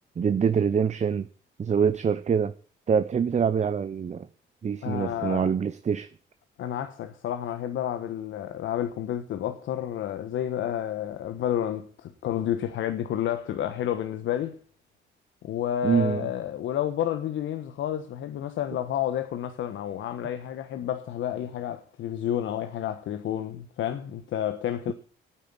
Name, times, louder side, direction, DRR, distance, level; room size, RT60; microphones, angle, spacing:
voice 1, 0.2-1.3 1.6-2.5 2.9-4.3 4.6-6.1 15.8-16.2, right 7 dB, 35° right, 0.8 m, -25 dB
voice 2, 4.8-5.5 6.6-14.6 15.4-24.9, left 10 dB, 80° left, 1.2 m, -30 dB
9.2 x 8.9 x 9.8 m
cardioid pair, 90°, 20 cm